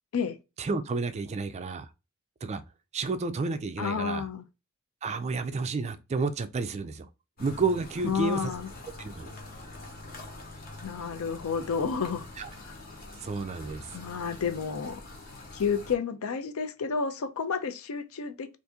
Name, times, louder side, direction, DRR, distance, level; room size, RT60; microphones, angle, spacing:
voice 1, 0.6-1.9 2.4-2.6 2.9-4.3 5.0-7.1 7.4-8.5 9.0-9.3 12.4-12.5 13.2-13.9, right 4 dB, 30° right, 0.3 m, -31 dB
voice 2, 3.8-4.4 8.0-8.7 10.8-12.3 12.6-12.7 13.9-15.0 15.5-18.6, left 5 dB, 65° left, 0.5 m, -30 dB
sound 1, 7.4-16.0, left 2 dB, 40° left, 1.0 m, -45 dB
2.7 x 2.5 x 3.5 m
head